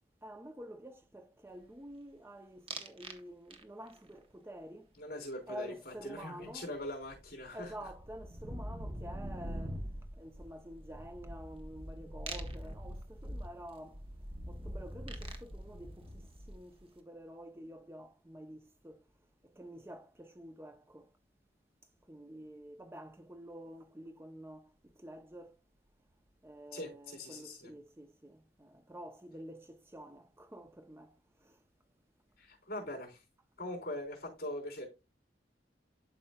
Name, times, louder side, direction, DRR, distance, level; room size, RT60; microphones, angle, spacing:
voice 1, 0.2-4.9 5.5-6.7 7.5-9.8 10.2-14.0 14.5-19.0 19.6-21.1 22.1-25.5 26.4-31.2 31.4-31.6, equal, 15° right, 0.5 m, -49 dB
sound 1, 2.7-3.2 3.5-4.0 6.4-6.5 6.7-16.8, right 1 dB, 30° right, 0.9 m, -44 dB
voice 2, 5.0-7.7 26.7-27.7 32.4-33.2 33.6-34.9, left 1 dB, 55° left, 3.8 m, -42 dB
11.5 x 5.0 x 2.2 m
head